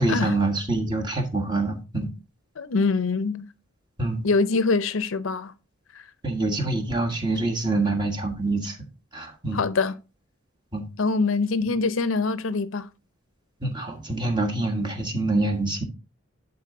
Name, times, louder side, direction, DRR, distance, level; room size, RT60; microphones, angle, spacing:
voice 1, 0.0-2.1 4.0-4.3 6.2-8.8 9.1-9.6 10.7-10.8 13.6-15.8, right 2 dB, 20° right, 1.4 m, -25 dB
voice 2, 2.6-3.5 4.2-5.5 5.9-6.1 9.5-10.0 11.0-12.9, left 4 dB, 70° left, 0.6 m, -24 dB
10.5 x 4.0 x 3.7 m
head